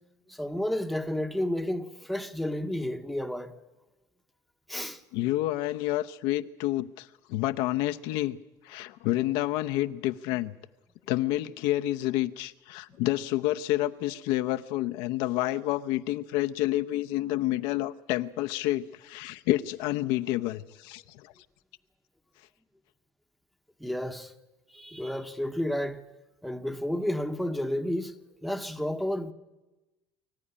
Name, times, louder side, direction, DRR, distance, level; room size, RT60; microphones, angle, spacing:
voice 1, 0.3-3.5 4.7-5.0 23.8-24.3 24.7-26.0 26.4-28.2 28.4-29.3, left 1 dB, ahead, 1.0 m, -31 dB
voice 2, 5.1-8.4 8.6-10.5 11.1-21.3, left 15 dB, 80° left, 0.8 m, -29 dB
24.5 x 14.0 x 9.9 m
cardioid pair, 160°, 9 cm